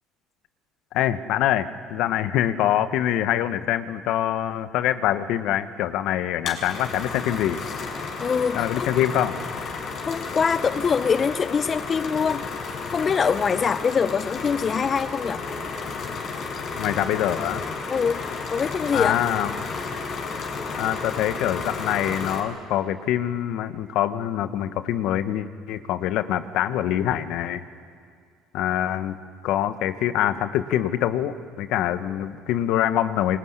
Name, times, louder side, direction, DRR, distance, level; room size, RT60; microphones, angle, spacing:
voice 1, 0.9-7.6 8.5-9.4 16.8-17.6 18.9-19.5 20.7-27.6 28.5-29.2 29.4-33.4, left 12 dB, 70° left, 11 dB, 1.2 m, -24 dB
sound 1, 6.4-22.4, left 4 dB, 55° left, 6.4 m, -32 dB
voice 2, 8.2-8.9 10.0-15.4 17.9-19.2, left 6 dB, 35° left, 13 dB, 0.7 m, -24 dB
25.0 x 21.5 x 9.8 m, 2.2 s
supercardioid pair, 80°, 0 cm